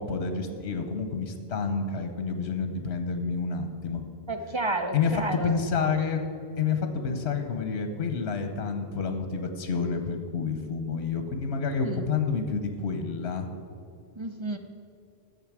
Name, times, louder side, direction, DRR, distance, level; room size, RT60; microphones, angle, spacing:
voice 1, 0.0-4.1 4.9-6.2 6.6-13.5, left 5 dB, 75° left, 6 dB, 1.1 m, -29 dB
voice 2, 4.3-5.5 11.8-12.0 14.2-14.6, right 2 dB, 35° right, 6 dB, 0.5 m, -31 dB
11.0 x 7.5 x 6.1 m, 2.5 s
omnidirectional pair, 1.1 m